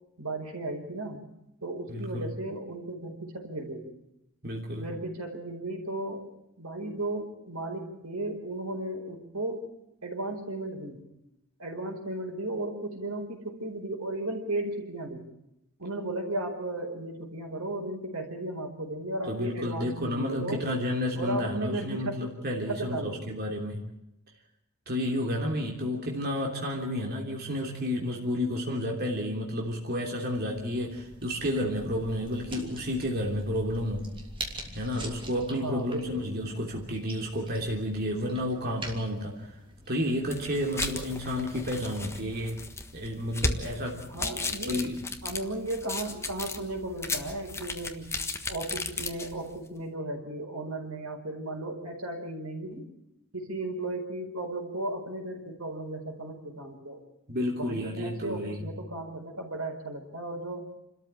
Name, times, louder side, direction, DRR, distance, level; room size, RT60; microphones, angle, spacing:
voice 1, 0.2-1.2 1.6-3.9 4.7-6.3 6.6-9.6 10.0-11.0 11.6-15.3 15.8-20.6 21.2-22.3 22.7-23.3 35.6-36.3 44.1-44.9 45.2-48.1 48.5-52.9 53.3-57.0 57.5-60.7, right 2 dB, 85° right, 4 dB, 4.7 m, -35 dB
voice 2, 1.9-2.3 4.4-4.9 19.3-23.9 24.9-34.1 34.7-39.5 39.9-42.6 42.9-44.1 44.6-45.0 57.3-58.6, left 1 dB, 45° right, 0 dB, 3.1 m, -31 dB
sound 1, 30.4-42.4, right 1 dB, 25° right, 3.1 m, -45 dB
sound 2, 40.2-49.6, left 3 dB, 10° left, 1.4 m, -36 dB
29.0 x 13.5 x 8.9 m, 0.86 s
head